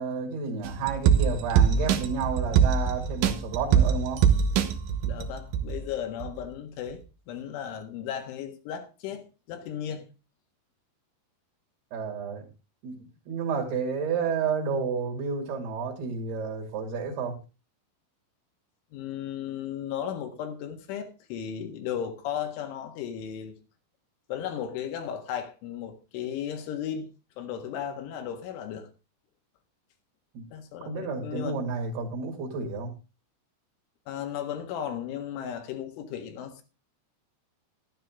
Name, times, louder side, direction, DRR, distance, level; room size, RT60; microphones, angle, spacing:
voice 1, 0.0-4.2 11.9-12.5 12.8-17.4 30.3-30.4 30.9-32.9, right 5 dB, 60° right, 3.9 m, -31 dB
sound 1, 0.6-5.8 6.2-6.3, right 8 dB, 90° right, 1.9 m, -23 dB
voice 2, 5.0-7.0 7.3-10.1 18.9-23.5 24.3-27.1 27.4-28.9 30.5-31.6 34.1-36.6, left 9 dB, 80° left, 4.0 m, -35 dB
12.5 x 12.0 x 3.6 m
omnidirectional pair, 5.5 m